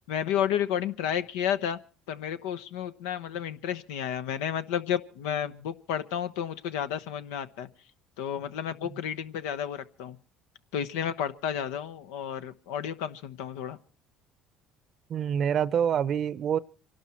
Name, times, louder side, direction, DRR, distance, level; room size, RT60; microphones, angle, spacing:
voice 1, 0.1-1.8 2.1-7.7 8.2-10.2 10.7-13.8, left 9 dB, 90° left, 1.0 m, -31 dB
voice 2, 15.1-16.6, right 8 dB, 50° right, 0.7 m, -26 dB
25.5 x 12.0 x 4.4 m
supercardioid pair, 95°, 0 cm